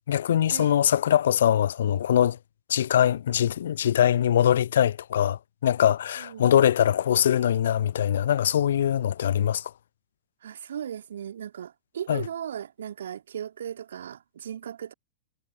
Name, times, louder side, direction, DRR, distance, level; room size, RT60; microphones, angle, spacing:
voice 1, 0.1-2.4 2.7-9.6 12.1-12.2, left 10 dB, 65° left, 0.6 m, -22 dB
voice 2, 10.4-14.9, right 9 dB, 65° right, 2.7 m, -37 dB
figure-of-eight pair, 95°, 0 cm